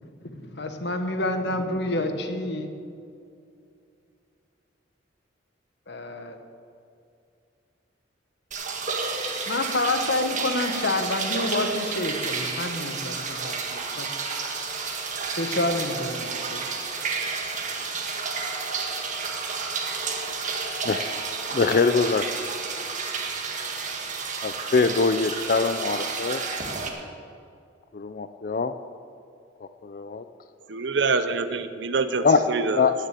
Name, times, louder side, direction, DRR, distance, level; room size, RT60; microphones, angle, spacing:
voice 1, 0.4-2.7 5.9-6.4 9.5-14.1 15.3-16.6, left 2 dB, 65° left, 6 dB, 1.4 m, -28 dB
sound 1, 8.5-26.9, right 4 dB, 40° right, 1.6 m, -31 dB
voice 2, 21.5-22.4 24.4-26.4 27.9-28.7 29.8-30.2 32.2-32.4 32.8-32.9, left 4 dB, 45° left, 10 dB, 0.4 m, -23 dB
voice 3, 30.7-32.9, right 4 dB, 70° right, 11 dB, 0.8 m, -26 dB
18.5 x 6.7 x 8.3 m, 2.5 s
head